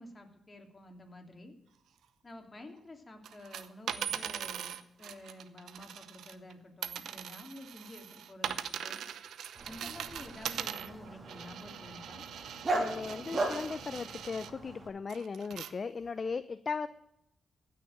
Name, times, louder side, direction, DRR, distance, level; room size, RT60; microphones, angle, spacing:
voice 1, 0.0-1.5 2.2-9.0 9.6-12.2, left 1 dB, 35° left, 3 dB, 2.9 m, -50 dB
sound 1, 3.2-6.5 6.8-14.5 15.1-15.7 16.3-16.4, right 9 dB, 85° right, 0.7 m, -41 dB
Dog, 9.5-14.9, right 2 dB, 40° right, 2.8 m, -38 dB
voice 2, 12.7-16.9, left 5 dB, 50° left, 13 dB, 0.5 m, -37 dB
15.5 x 6.6 x 9.0 m, 0.81 s
cardioid pair, 65°, 0 cm